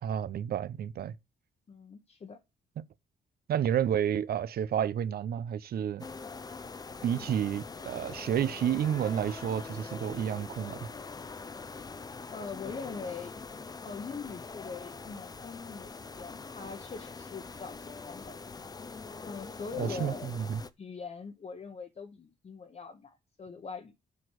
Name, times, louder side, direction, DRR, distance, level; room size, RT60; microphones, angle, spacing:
voice 1, 0.0-1.2 3.5-6.0 7.0-10.9 19.8-20.6, right 9 dB, 60° right, 0.6 m, -30 dB
voice 2, 1.7-2.4 12.3-13.4 13.8-18.4 19.2-20.3 20.8-23.9, left 5 dB, 35° left, 1.1 m, -42 dB
sound 1, 6.0-20.7, left 4 dB, 20° left, 0.5 m, -43 dB
7.4 x 6.1 x 6.3 m
cardioid pair, 115°, 18 cm